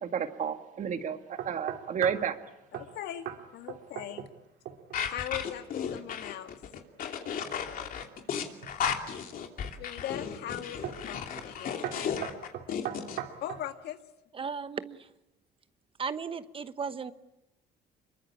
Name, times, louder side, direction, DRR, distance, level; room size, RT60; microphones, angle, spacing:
voice 1, 0.0-2.4, right 7 dB, 50° right, 7 dB, 2.1 m, -31 dB
sound 1, 1.4-2.3 2.7-2.9 3.3-3.4 3.7-4.4 4.7-5.0 8.4-9.0 9.6-10.0 10.8-11.1 11.4-11.6 11.8-13.7, right 10 dB, 75° right, 2.5 m, -38 dB
voice 2, 2.7-3.3 3.5-4.3 4.9-6.6 9.8-11.9 13.4-14.0, left 11 dB, 75° left, 7 dB, 1.9 m, -40 dB
sound 2, 4.9-13.2, left 7 dB, 55° left, 2.8 m, -34 dB
voice 3, 14.3-15.1 16.0-17.1, right 5 dB, 30° right, 12 dB, 1.1 m, -35 dB
25.5 x 23.0 x 8.6 m, 0.90 s
cardioid pair, 110°, 17 cm